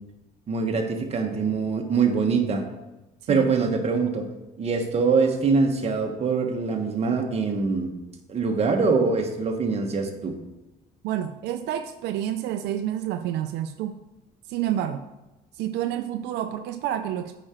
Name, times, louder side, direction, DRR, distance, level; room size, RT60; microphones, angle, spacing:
voice 1, 0.5-2.6 3.3-4.3 4.6-7.9 8.3-10.3, right 4 dB, 40° right, 3 dB, 1.3 m, -23 dB
voice 2, 11.0-14.0 14.5-15.0 15.6-17.4, right 11 dB, 85° right, 8 dB, 0.5 m, -29 dB
8.7 x 5.0 x 4.4 m, 1.0 s
cardioid pair, 110°, 17 cm